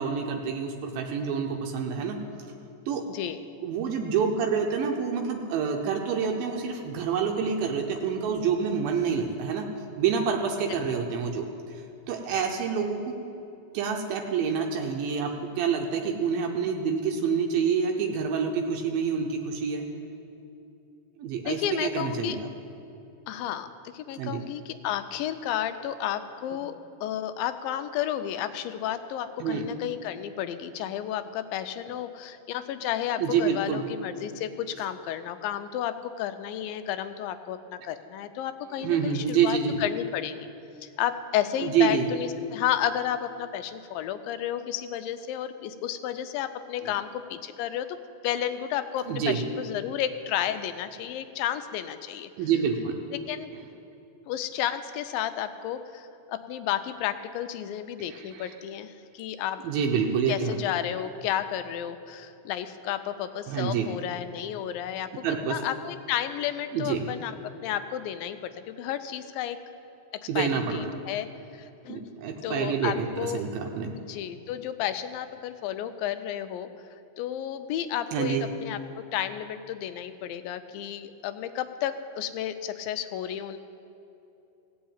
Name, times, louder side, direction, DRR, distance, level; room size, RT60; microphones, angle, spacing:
voice 1, 0.0-2.2 2.9-3.0 3.6-9.7 10.0-11.5 12.1-13.1 13.7-19.8 21.2-22.5 24.2-24.4 29.4-29.6 33.2-33.8 38.8-39.8 41.6-42.1 49.1-49.4 52.4-52.9 58.1-58.5 59.6-60.6 63.5-63.9 65.2-65.6 66.7-67.1 70.3-70.8 71.9-73.9 78.1-78.5, right 6 dB, 80° right, 2 dB, 2.5 m, -27 dB
voice 2, 3.1-3.4 10.7-11.0 21.5-22.4 23.3-23.7 23.9-26.8 27.0-40.3 40.8-47.9 48.2-52.3 53.3-53.5 54.3-59.6 60.3-65.1 65.5-67.4 67.6-69.6 70.4-71.3 71.5-72.0 72.4-73.4 74.1-76.7 77.2-83.6, left 10 dB, 85° left, 10 dB, 2.3 m, -32 dB
16.0 x 5.5 x 8.8 m, 2.8 s
omnidirectional pair, 4.1 m